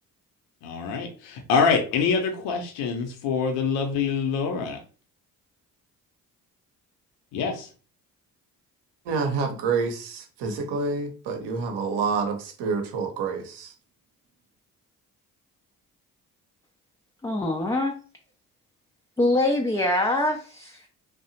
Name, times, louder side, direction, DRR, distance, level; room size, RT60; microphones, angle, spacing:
voice 1, 0.6-4.8 7.3-7.7, left 5 dB, 65° left, 3 dB, 0.7 m, -25 dB
voice 2, 9.1-13.7, right 5 dB, 60° right, 4 dB, 0.8 m, -28 dB
voice 3, 17.2-17.9 19.2-20.9, left 1 dB, 10° left, 1 dB, 0.3 m, -24 dB
2.7 x 2.1 x 2.7 m, 0.38 s
hypercardioid pair, 45°, 46 cm